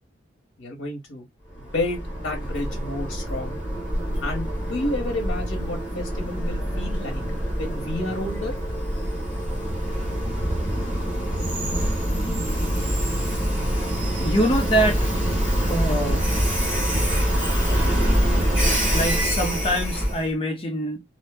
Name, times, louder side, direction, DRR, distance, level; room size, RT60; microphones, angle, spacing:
voice 1, 0.6-1.2 1.6-3.6 4.2-7.2 7.6-8.5, left 2 dB, 85° left, 0.9 m, -31 dB
Train, 1.5-20.3, equal, 5° right, 1.1 m, -25 dB
voice 2, 14.2-15.1 15.7-16.3 18.9-21.0, equal, 30° left, 0.6 m, -24 dB
2.7 x 2.0 x 3.3 m
head